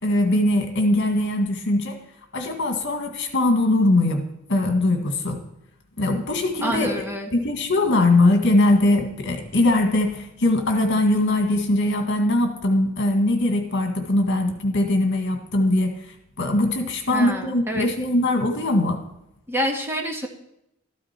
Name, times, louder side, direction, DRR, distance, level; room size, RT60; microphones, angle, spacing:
voice 1, 0.0-2.0 2.3-5.4 6.0-7.1 7.3-16.1 16.4-19.0, left 1 dB, 60° left, 4 dB, 1.9 m, -21 dB
voice 2, 6.6-7.3 17.1-17.9 19.5-20.3, equal, 10° right, 1 dB, 1.4 m, -27 dB
13.5 x 12.0 x 4.5 m, 0.81 s
head